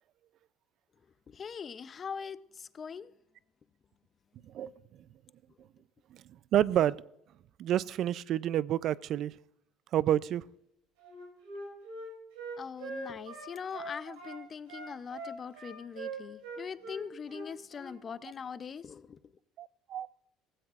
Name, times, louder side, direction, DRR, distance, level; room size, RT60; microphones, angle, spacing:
voice 1, 1.3-3.1 12.6-19.2, left 6 dB, 35° left, 0.5 m, -42 dB
voice 2, 6.5-7.0 7.6-9.3 9.9-10.4 19.6-20.1, right 11 dB, 55° right, 0.4 m, -29 dB
Wind instrument woodwind instrument, 11.0-14.4 14.7-18.0, right 2 dB, 90° right, 6.1 m, -42 dB
16.5 x 15.5 x 2.4 m
supercardioid pair, 90°, 0 cm